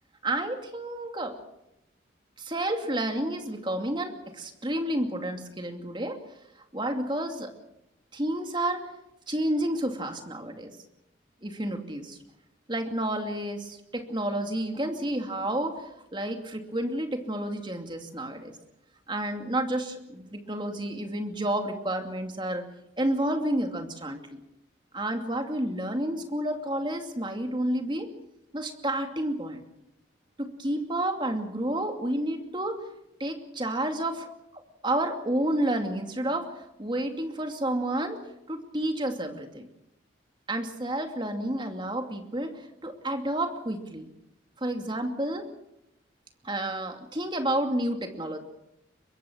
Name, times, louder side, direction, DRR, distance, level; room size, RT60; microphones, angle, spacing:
voice 1, 0.2-1.4 2.4-6.2 6.7-7.5 8.1-8.9 9.3-10.7 11.4-12.2 12.7-18.5 19.1-22.7 23.0-24.4 24.9-28.1 28.5-29.6 30.4-32.8 33.2-36.5 36.8-38.2 38.5-39.7 40.5-44.1 44.6-45.5 46.4-48.4, right 1 dB, 25° right, 5 dB, 2.6 m, -30 dB
23.5 x 23.0 x 6.3 m, 0.86 s
head